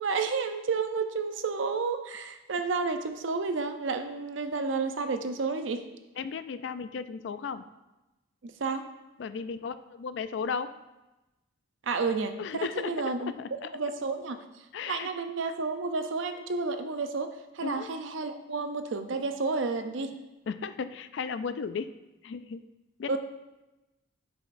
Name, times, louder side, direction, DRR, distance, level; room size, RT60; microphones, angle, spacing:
voice 1, 0.0-5.9 8.4-8.9 11.8-13.3 13.7-14.4 14.9-20.1 23.1-23.2, right 4 dB, 75° right, 8 dB, 0.6 m, -31 dB
voice 2, 6.2-7.6 9.2-10.7 12.4-13.7 14.7-15.1 17.6-17.9 20.5-21.9 22.2-22.6 23.0-23.2, left 5 dB, 65° left, 12 dB, 0.3 m, -35 dB
11.0 x 4.9 x 2.6 m, 1.0 s
head